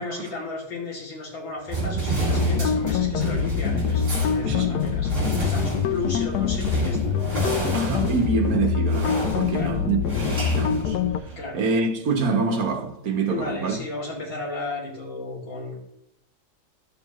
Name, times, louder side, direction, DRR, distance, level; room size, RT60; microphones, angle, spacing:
voice 1, 0.0-7.1 9.5-9.8 11.4-11.6 13.3-15.8, left 3 dB, 90° left, 3.5 m, -34 dB
sound 1, 1.7-11.5, right 3 dB, 30° right, 3.1 m, -30 dB
sound 2, 1.7-7.8, right 8 dB, 85° right, 1.4 m, -37 dB
sound 3, 2.3-11.2, left 7 dB, 70° left, 1.1 m, -25 dB
voice 2, 4.4-4.8 7.7-11.0 11.5-13.8, right 4 dB, 55° right, 1.4 m, -26 dB
12.5 x 6.9 x 3.0 m
omnidirectional pair, 2.0 m